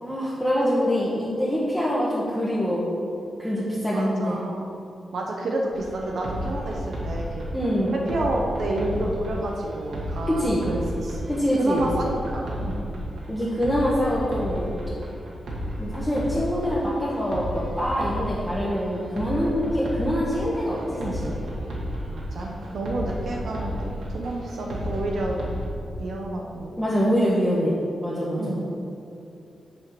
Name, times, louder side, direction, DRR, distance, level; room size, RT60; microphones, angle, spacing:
voice 1, 0.0-3.1 3.4-4.4 7.5-7.9 10.3-10.6 11.3-11.8 13.3-14.8 15.8-21.3 26.8-28.4, equal, 5° left, -8 dB, 1.0 m, -25 dB
voice 2, 3.9-4.7 5.1-7.5 7.9-11.3 11.6-12.8 22.1-25.4 26.0-26.7 28.4-28.7, right 2 dB, 65° right, -1 dB, 0.9 m, -30 dB
sound 1, 5.7-25.7, equal, 80° right, 1.5 m, -33 dB
7.1 x 4.5 x 6.8 m, 2.7 s
wide cardioid pair, 160°, 0 cm